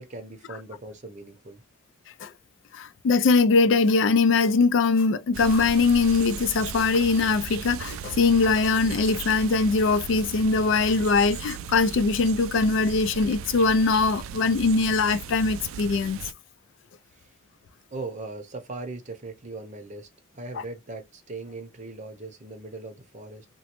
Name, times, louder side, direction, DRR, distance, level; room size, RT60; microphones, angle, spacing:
voice 1, 0.0-1.6 17.1-17.3 17.9-20.1 20.3-23.5, right 3 dB, 35° right, 0.7 m, -39 dB
voice 2, 2.7-16.2, left 4 dB, 65° left, 0.3 m, -22 dB
sound 1, 5.3-16.3, right 7 dB, 85° right, 0.3 m, -37 dB
3.0 x 2.0 x 2.8 m
head